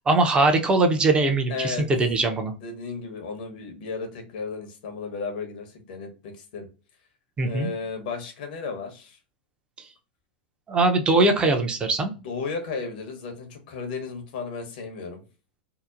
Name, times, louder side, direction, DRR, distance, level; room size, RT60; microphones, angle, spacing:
voice 1, 0.1-2.5 7.4-7.7 9.8-9.9 10.7-12.1, right 2 dB, 20° right, 5 dB, 0.6 m, -21 dB
voice 2, 1.5-1.8 2.5-6.7 7.4-9.2 12.2-15.2, left 4 dB, 65° left, 5 dB, 0.9 m, -34 dB
2.8 x 2.1 x 2.4 m, 0.33 s
hypercardioid pair, 100°, 5 cm